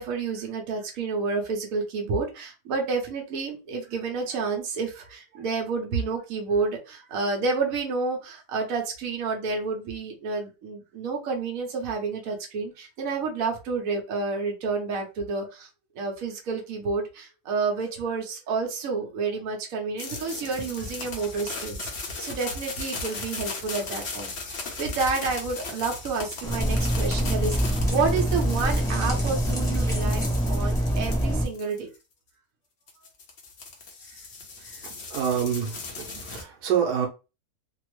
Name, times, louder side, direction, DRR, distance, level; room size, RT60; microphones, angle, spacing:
voice 1, 0.0-15.7 16.0-31.9 34.6-34.7 35.2-35.3 36.1-36.2, right 4 dB, 65° right, 2 dB, 1.2 m, -30 dB
audio bleue, 20.0-32.0 32.9-36.4, left 3 dB, 50° left, 0.9 m, -37 dB
sound 1, 26.4-31.4, equal, 5° left, 0.4 m, -25 dB
voice 2, 35.1-35.7 36.3-37.1, right 8 dB, 85° right, 0 dB, 1.3 m, -25 dB
3.4 x 2.0 x 3.1 m, 0.29 s
omnidirectional pair, 1.7 m